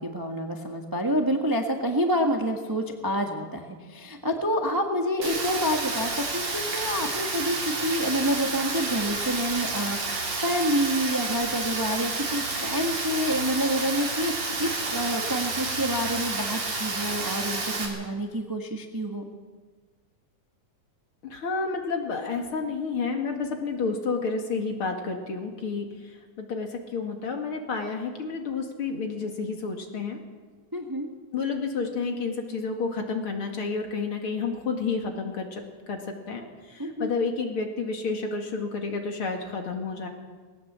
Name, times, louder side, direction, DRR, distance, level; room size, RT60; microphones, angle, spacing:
voice 1, 0.0-19.3 30.7-31.1 36.8-37.1, equal, 20° right, 3 dB, 0.6 m, -28 dB
Rain, 5.2-17.9, right 3 dB, 60° right, 4.6 m, -30 dB
voice 2, 21.2-25.9 26.4-30.2 31.3-36.0 36.3-40.1, left 4 dB, 45° left, 3 dB, 2.8 m, -30 dB
20.0 x 18.0 x 7.5 m, 1.4 s
omnidirectional pair, 3.4 m